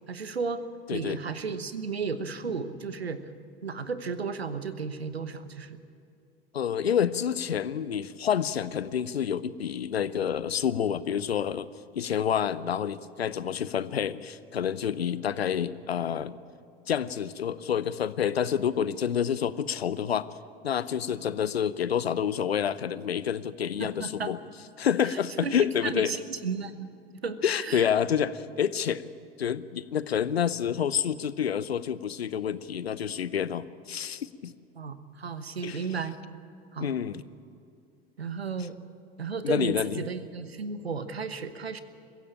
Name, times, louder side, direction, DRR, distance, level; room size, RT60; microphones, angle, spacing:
voice 1, 0.1-0.6 0.9-3.2 3.6-5.8 23.8-24.3 25.1-26.9 27.2-27.9 34.7-36.2 36.7-37.0 38.2-38.8 39.2-41.8, right 5 dB, 85° right, 12 dB, 1.1 m, -34 dB
voice 2, 6.5-11.7 11.9-16.3 16.9-20.3 20.6-24.4 24.8-26.1 27.4-29.1 29.4-34.5 35.6-35.8 36.8-37.2 39.4-40.0, left 8 dB, 85° left, 17 dB, 0.7 m, -28 dB
22.5 x 15.5 x 8.7 m, 2.4 s
figure-of-eight pair, 75°, 30 cm